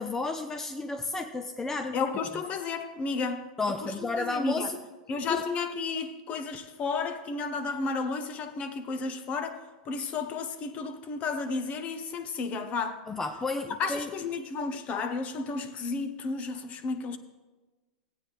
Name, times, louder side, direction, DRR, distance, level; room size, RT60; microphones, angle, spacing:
voice 1, 0.0-2.0 3.2-3.3 3.6-4.8 5.3-5.4 13.1-14.1, left 3 dB, 10° left, 0.5 m, -32 dB
voice 2, 1.9-4.7 5.1-13.0 13.7-17.2, left 4 dB, 35° left, 0.9 m, -32 dB
15.5 x 8.7 x 3.2 m
hypercardioid pair, 120°, 4 cm